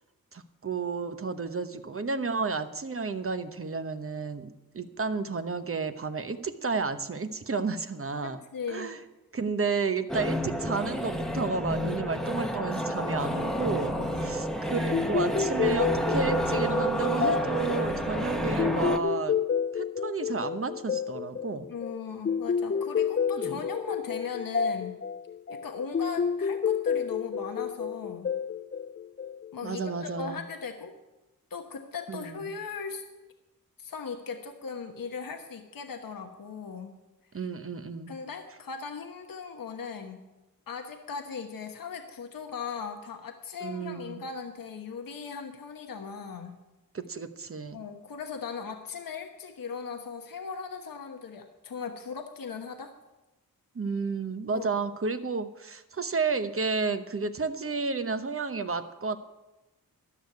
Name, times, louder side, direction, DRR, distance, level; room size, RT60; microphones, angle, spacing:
voice 1, 0.3-8.4 8.7-9.0 9.3-19.4 19.7-21.7 23.3-23.6 29.6-30.4 32.1-32.5 37.3-38.1 43.6-44.2 46.9-47.8 53.7-59.2, right 4 dB, 40° right, 9 dB, 1.0 m, -32 dB
voice 2, 8.2-8.9 13.9-14.2 21.7-25.0 25.5-28.3 29.5-30.9 31.5-33.0 33.8-36.9 38.1-40.2 40.7-46.6 47.7-52.9 54.5-54.8, left 5 dB, 70° left, 4 dB, 1.2 m, -38 dB
sound 1, 10.1-19.0, equal, ahead, 1.1 m, -30 dB
sound 2, 14.9-29.7, left 6 dB, 35° left, 0.5 m, -30 dB
13.0 x 6.5 x 9.4 m, 1.1 s
cardioid pair, 60°, 35 cm